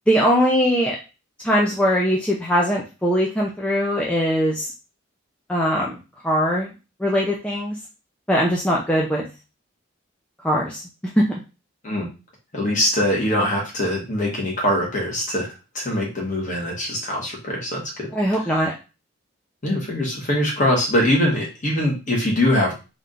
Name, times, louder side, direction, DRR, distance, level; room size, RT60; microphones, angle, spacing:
voice 1, 0.1-1.0 1.4-4.7 5.5-6.0 6.2-6.7 7.0-7.8 8.3-9.3 10.4-10.8 11.2-11.3 18.1-18.7, equal, 5° left, -3 dB, 0.5 m, -20 dB
voice 2, 12.5-15.5 15.7-18.1 18.6-18.7 19.6-22.7, left 1 dB, 40° left, -2 dB, 1.5 m, -22 dB
3.5 x 2.8 x 3.8 m, 0.30 s
head